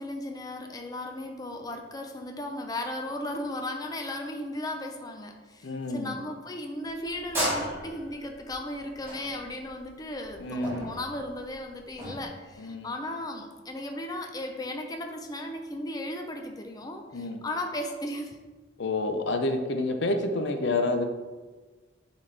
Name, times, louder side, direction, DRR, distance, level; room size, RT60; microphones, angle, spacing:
voice 1, 0.0-18.4, left 1 dB, 20° left, 3 dB, 0.6 m, -36 dB
voice 2, 5.6-6.1 10.4-10.9 12.6-12.9 17.1-17.4 18.8-21.0, left 2 dB, 65° left, 6 dB, 0.6 m, -29 dB
sound 1, 6.9-12.3, right 1 dB, 15° right, 1.8 m, -34 dB
8.5 x 4.1 x 3.3 m, 1.3 s
head